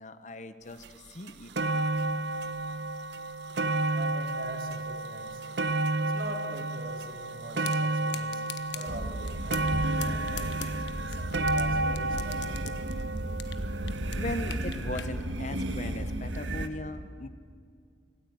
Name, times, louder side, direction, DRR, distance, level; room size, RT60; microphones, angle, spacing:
voice 1, 0.0-1.5 14.1-17.3, left 1 dB, 40° left, 11 dB, 1.0 m, -38 dB
sound 1, 0.8-0.9 1.3-14.4 15.2-15.3, right 2 dB, 70° right, 0.9 m, -31 dB
voice 2, 3.9-5.4 6.0-10.6 11.0-12.8, right 1 dB, 50° right, 2 dB, 3.5 m, -43 dB
sound 2, 7.6-7.8 8.1-8.9 9.3-9.7 10.0-11.6 11.9-13.6 13.9-15.1, left 11 dB, 70° left, 1.3 m, -40 dB
sound 3, 8.9-16.7, right 1 dB, 85° right, 1.6 m, -34 dB
26.5 x 17.5 x 9.2 m, 2.1 s
head